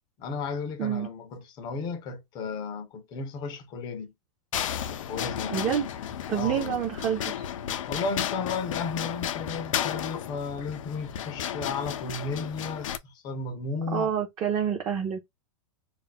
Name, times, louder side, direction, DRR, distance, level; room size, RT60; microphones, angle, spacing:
voice 1, 0.2-4.1 4.6-5.7 6.3-6.8 7.9-14.1, left 4 dB, 25° left, 0.5 m, -34 dB
sound 1, 4.5-13.0, left 10 dB, 80° left, 0.5 m, -33 dB
voice 2, 5.5-5.9 6.3-7.2 13.9-15.2, right 9 dB, 20° right, 0.5 m, -27 dB
2.4 x 2.1 x 3.8 m
supercardioid pair, 155°, 16 cm